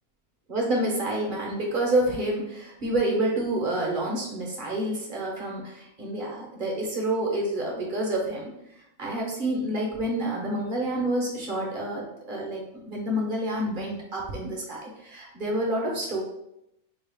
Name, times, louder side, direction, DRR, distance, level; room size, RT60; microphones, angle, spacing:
voice 1, 0.5-16.2, right 1 dB, 40° right, -2 dB, 0.8 m, -28 dB
4.5 x 2.3 x 3.4 m, 0.84 s
omnidirectional pair, 1.6 m